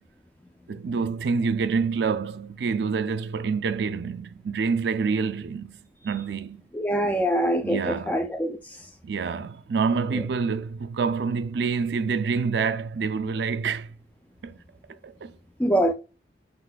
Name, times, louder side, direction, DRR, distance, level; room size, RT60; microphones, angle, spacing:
voice 1, 0.7-5.8 6.0-6.6 7.6-8.2 9.0-13.9 14.4-14.6 14.9-15.3, right 5 dB, 70° right, 0.4 m, -27 dB
voice 2, 6.7-8.9 10.1-10.3 15.6-15.9, equal, 10° left, 0.4 m, -24 dB
5.4 x 4.0 x 2.2 m
head